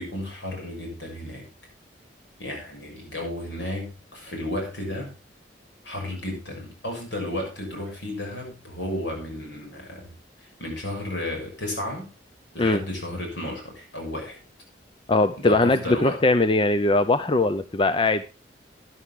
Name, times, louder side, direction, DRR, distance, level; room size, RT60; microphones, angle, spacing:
voice 1, 0.0-1.5 2.4-5.2 5.8-10.1 10.6-12.1 12.5-14.4 15.4-16.2, left 1 dB, 80° left, 1 dB, 6.6 m, -33 dB
voice 2, 15.1-18.3, left 2 dB, 30° left, 11 dB, 0.5 m, -21 dB
12.5 x 11.0 x 3.6 m, 0.31 s
head